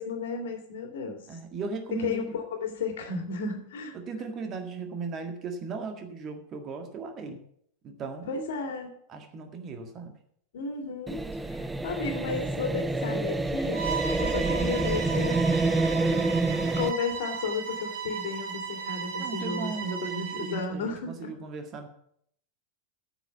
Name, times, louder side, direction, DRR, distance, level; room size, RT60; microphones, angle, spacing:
voice 1, 0.0-1.2 1.9-3.9 8.3-8.9 10.5-13.8 14.2-15.4 16.7-21.3, left 4 dB, 55° left, 4 dB, 2.4 m, -33 dB
voice 2, 1.3-2.3 3.9-7.4 7.8-8.3 9.1-10.1 16.0-16.9 19.2-21.9, right 4 dB, 30° right, 5 dB, 1.7 m, -37 dB
sound 1, 11.1-16.9, right 3 dB, 10° right, 0.5 m, -27 dB
Bowed string instrument, 13.7-20.7, right 6 dB, 55° right, 2.5 m, -36 dB
9.0 x 7.3 x 8.1 m, 0.70 s
figure-of-eight pair, 90°, 0 cm